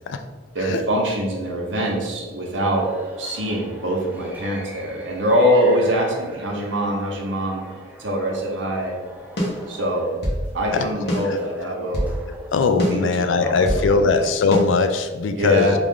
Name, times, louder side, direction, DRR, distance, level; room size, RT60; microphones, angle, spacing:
voice 1, 0.5-2.9 3.2-7.6 8.0-9.0 9.7-10.1 10.5-12.1 12.9-14.3 15.4-15.7, equal, 70° right, -1 dB, 0.8 m, -23 dB
sound 1, 2.7-12.5, right 1 dB, 10° right, 0.5 m, -44 dB
sound 2, 9.4-10.4 11.1-12.2 12.8-13.9 14.5-14.6, equal, 60° left, 0.9 m, -26 dB
voice 2, 12.5-15.7, left 4 dB, 80° left, 8 dB, 0.3 m, -20 dB
3.3 x 2.4 x 3.6 m, 1.5 s
head